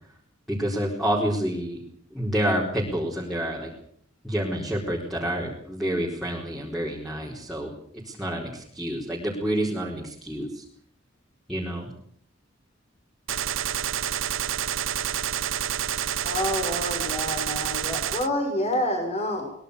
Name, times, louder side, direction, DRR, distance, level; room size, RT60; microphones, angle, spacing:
voice 1, 0.5-1.8 2.1-3.7 4.2-7.7 8.0-10.6 11.5-11.9, equal, ahead, -4 dB, 4.4 m, -28 dB
Gunshot gunfire, 13.3-18.3, right 10 dB, 90° right, 0.9 m, -28 dB
voice 2, 16.2-19.5, left 1 dB, 35° left, 4 dB, 5.9 m, -28 dB
23.0 x 21.0 x 6.8 m, 0.63 s
head